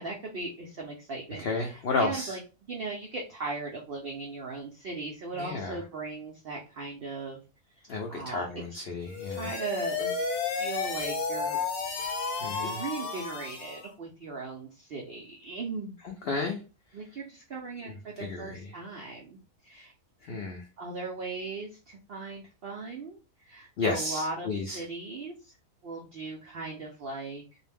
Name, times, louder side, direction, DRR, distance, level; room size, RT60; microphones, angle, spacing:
voice 1, 0.0-2.4 2.7-7.4 7.8-8.8 9.3-10.2 10.6-12.0 12.6-15.9 16.9-19.9 20.8-25.5 25.8-27.6, right 3 dB, 75° right, -1 dB, 0.5 m, -38 dB
voice 2, 1.4-2.4 5.4-5.8 7.9-9.5 12.4-12.8 16.0-16.6 18.2-18.7 20.2-20.6 23.8-24.8, left 3 dB, 90° left, 2 dB, 0.5 m, -32 dB
sound 1, 9.1-13.9, left 5 dB, 70° left, 1.0 m, -32 dB
2.4 x 2.0 x 3.3 m, 0.32 s
omnidirectional pair, 1.6 m